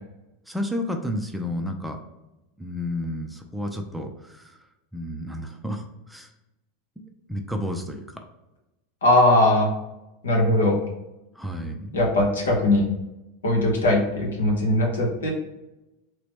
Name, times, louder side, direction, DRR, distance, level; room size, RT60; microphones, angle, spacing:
voice 1, 0.5-2.0 2.6-4.6 4.9-6.3 7.0-8.2 11.3-12.0, left 1 dB, 5° right, 3 dB, 0.5 m, -31 dB
voice 2, 9.0-9.7 10.2-10.8 11.9-12.9 13.4-15.3, left 1 dB, 75° left, -1 dB, 0.9 m, -20 dB
3.0 x 2.9 x 3.3 m, 0.96 s
figure-of-eight pair, 85°, 0 cm